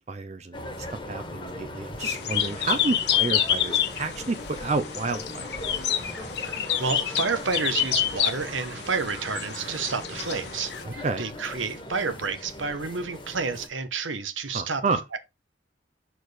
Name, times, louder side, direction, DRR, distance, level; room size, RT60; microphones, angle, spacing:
voice 1, 0.1-5.6 10.8-11.3 14.5-15.0, right 3 dB, 35° right, 0.5 m, -30 dB
sound 1, 0.5-13.7, left 1 dB, 25° left, 1.3 m, -40 dB
sound 2, 2.0-10.8, left 10 dB, 55° left, 1.0 m, -28 dB
sound 3, 6.1-11.3, right 3 dB, 60° right, 1.6 m, -46 dB
voice 2, 6.4-10.7 11.2-14.8 15.1-15.2, right 4 dB, 85° right, 1.1 m, -30 dB
6.2 x 4.6 x 4.9 m
head